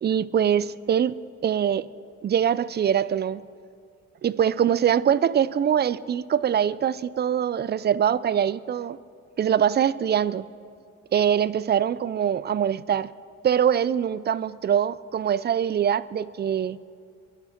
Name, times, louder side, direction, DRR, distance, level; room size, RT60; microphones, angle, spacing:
voice 1, 0.0-1.1 1.4-1.9 2.2-3.4 4.2-9.0 9.4-10.5 11.1-13.1 13.4-16.8, right 9 dB, 35° right, 18 dB, 0.4 m, -23 dB
21.5 x 11.5 x 4.4 m, 2.3 s
cardioid pair, 90°, 30 cm